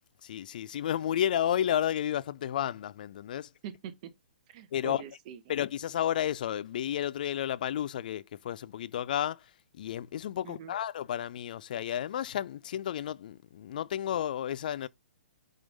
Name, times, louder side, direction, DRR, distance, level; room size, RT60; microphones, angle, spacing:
voice 1, 0.2-3.5 4.7-5.0 5.5-9.4 9.8-14.9, left 10 dB, 50° left, 0.4 m, -32 dB
voice 2, 3.6-4.1 4.5-5.6 10.4-10.7, right 9 dB, 40° right, 0.9 m, -44 dB
5.7 x 3.6 x 5.2 m
figure-of-eight pair, 120°, 6 cm